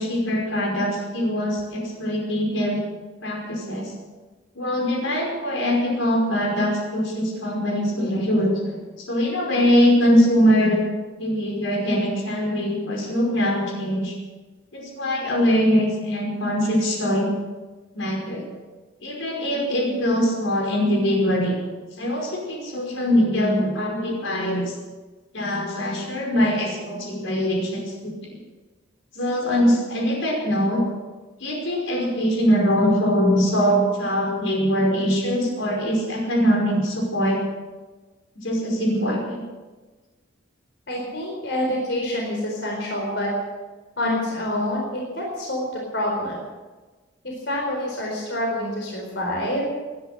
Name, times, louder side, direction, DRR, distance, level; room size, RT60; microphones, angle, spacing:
voice 1, 0.0-2.8 3.2-3.9 4.6-10.8 11.2-14.1 14.7-17.3 18.0-18.4 19.0-21.6 22.0-24.7 25.3-28.4 29.2-30.8 31.4-37.4 38.4-39.4, equal, 80° left, 0 dB, 5.2 m, -22 dB
voice 2, 40.9-43.3 44.0-45.6 45.9-46.4 47.2-49.8, left 1 dB, 60° left, -1 dB, 4.3 m, -27 dB
20.0 x 11.0 x 6.7 m, 1.3 s
head